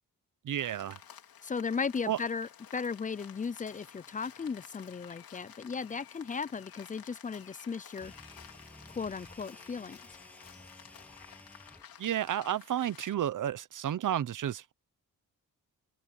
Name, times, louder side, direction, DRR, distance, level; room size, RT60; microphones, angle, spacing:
voice 1, 0.4-1.0 2.1-2.2 12.0-14.7, right 10 dB, 60° right, 0.9 m, -31 dB
Rain, 0.6-13.1, left 9 dB, 85° left, 3.2 m, -53 dB
voice 2, 1.4-8.1 8.9-10.0, left 5 dB, 25° left, 0.4 m, -36 dB
sound 1, 7.9-11.9, left 1 dB, 5° left, 7.9 m, -54 dB
wide cardioid pair, 130°, 35 cm